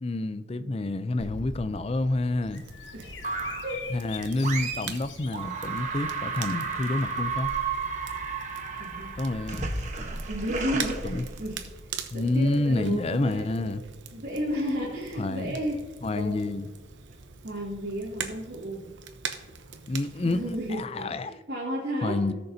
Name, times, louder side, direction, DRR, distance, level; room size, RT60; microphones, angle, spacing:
voice 1, 0.0-2.6 3.9-7.5 9.2-9.7 11.0-11.2 12.1-13.8 15.2-15.6 16.0-16.7 19.9-21.4 22.0-22.3, left 2 dB, 30° left, 0.4 m, -28 dB
Bird vocalization bird call bird song, 1.2-9.6, left 3 dB, 85° left, 1.0 m, -45 dB
Crackle, 2.5-20.8, right 6 dB, 85° right, 0.9 m, -43 dB
voice 2, 2.9-3.8 8.8-9.1 10.1-13.7 14.1-15.8 16.1-16.4 17.4-18.9 20.2-22.3, equal, 65° right, 2.0 m, -33 dB
sound 1, 3.2-3.8 4.4-5.0 5.3-11.8, right 4 dB, 40° right, 1.1 m, -33 dB
17.5 x 6.7 x 2.7 m
head